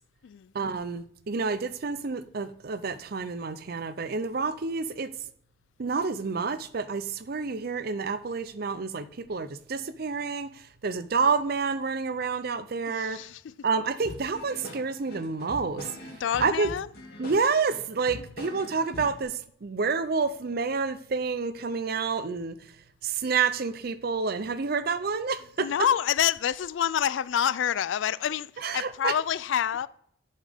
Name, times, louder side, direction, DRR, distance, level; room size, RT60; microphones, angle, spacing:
voice 1, 0.5-5.1 5.8-10.5 10.8-13.2 13.6-15.8 16.4-16.7 17.2-22.6 23.0-25.7 28.6-29.1, right 4 dB, 50° right, 0.5 m, -29 dB
voice 2, 12.9-13.5 16.2-16.9 25.6-29.9, left 9 dB, 70° left, 0.3 m, -27 dB
sound 1, 14.0-19.2, left 1 dB, 50° left, 2.2 m, -43 dB
11.0 x 5.6 x 3.5 m
head